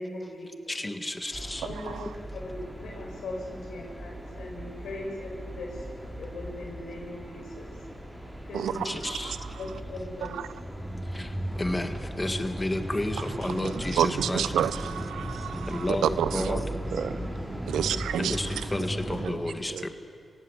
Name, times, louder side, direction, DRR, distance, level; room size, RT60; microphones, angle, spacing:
voice 1, 0.0-0.7 1.6-2.1 2.4-7.7 8.4-8.9 9.6-10.4 12.2-12.3 15.9-16.0 17.7-17.9 18.2-18.3, left 2 dB, 80° left, 6.3 m, -39 dB
voice 2, 0.7-1.7 8.7-9.5 11.0-14.6 15.3-16.6 18.2-19.9, left 1 dB, 25° left, 1.9 m, -32 dB
sound 1, 1.3-19.3, right 1 dB, 10° right, 5.8 m, -37 dB
voice 3, 8.5-9.4 14.0-16.4 17.7-18.4, right 10 dB, 90° right, 0.6 m, -29 dB
voice 4, 13.5-14.1 16.3-18.4 18.8-19.4 19.7-19.9, right 5 dB, 70° right, 1.5 m, -37 dB
24.5 x 17.0 x 8.2 m
supercardioid pair, 45°, 0 cm